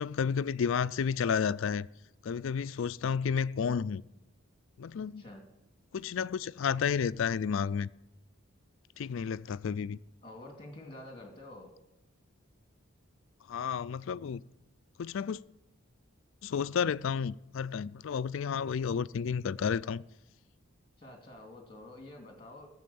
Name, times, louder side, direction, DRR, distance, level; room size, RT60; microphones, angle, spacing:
voice 1, 0.0-1.9 2.2-4.0 4.8-5.2 5.9-7.9 9.0-10.0 13.5-14.4 15.0-15.4 16.4-20.0, left 6 dB, 70° left, 0.4 m, -31 dB
voice 2, 10.2-11.7 21.0-22.7, left 1 dB, 25° left, 2.5 m, -48 dB
15.0 x 7.5 x 7.1 m
head